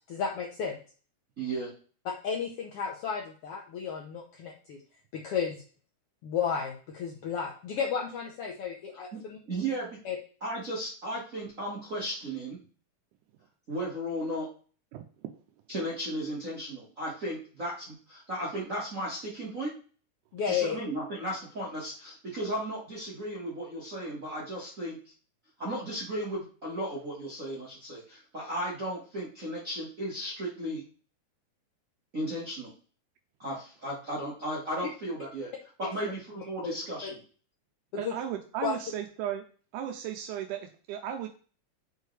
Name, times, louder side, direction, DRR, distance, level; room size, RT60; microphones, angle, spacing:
voice 1, 0.1-0.8 2.0-4.8 5.1-5.6 6.2-9.4 10.0-10.2 20.3-20.8 36.0-36.1 36.6-36.8 37.0-37.1 38.0-38.1 38.6-38.7, left 7 dB, 85° left, 0 dB, 1.2 m, -33 dB
voice 2, 1.4-1.7 9.1-9.2 9.5-9.9 10.4-12.6 13.7-14.5 15.7-19.7 20.4-25.0 25.6-30.8 32.1-32.7 33.4-35.5 35.8-37.2, right 1 dB, 45° right, -6 dB, 1.1 m, -35 dB
voice 3, 38.0-39.4 39.7-41.3, right 10 dB, 85° right, 5 dB, 2.1 m, -35 dB
6.4 x 4.6 x 3.2 m, 0.40 s
omnidirectional pair, 3.7 m